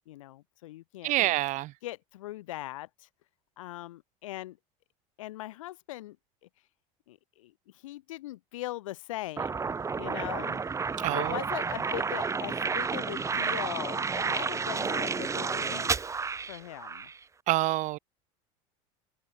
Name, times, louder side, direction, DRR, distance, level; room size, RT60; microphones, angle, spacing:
voice 1, 0.1-1.1 1.8-3.1 3.6-4.6 5.2-6.2 7.1-9.7 10.0-10.6 11.1-16.0 16.5-17.1, left 16 dB, 90° left, 3.0 m, -40 dB
voice 2, 1.0-1.7 11.0-11.4 17.5-18.0, right 17 dB, 50° right, 0.5 m, -27 dB
sound 1, 9.4-17.2, right 5 dB, 20° right, 0.9 m, -31 dB
supercardioid pair, 105°, 16 cm